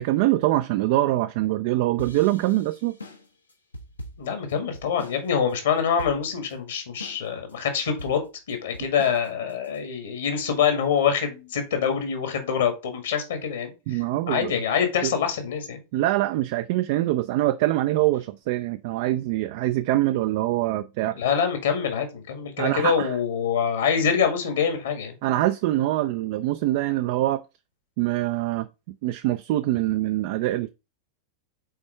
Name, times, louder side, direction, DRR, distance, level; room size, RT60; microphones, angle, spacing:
voice 1, 0.0-3.0 13.9-14.5 15.0-15.1 15.9-21.4 22.6-23.2 25.2-27.4 28.0-28.7 29.0-30.7, right 16 dB, 50° right, 0.4 m, -24 dB
sound 1, 2.0-5.2 5.5-5.6 6.0-6.5 7.0-7.5 8.0-9.8, left 1 dB, 80° left, 1.1 m, -42 dB
voice 2, 4.2-8.2 8.5-14.0 14.3-15.8 21.2-25.1, left 7 dB, 65° left, 1.7 m, -25 dB
5.7 x 4.2 x 4.6 m
figure-of-eight pair, 90°, 0 cm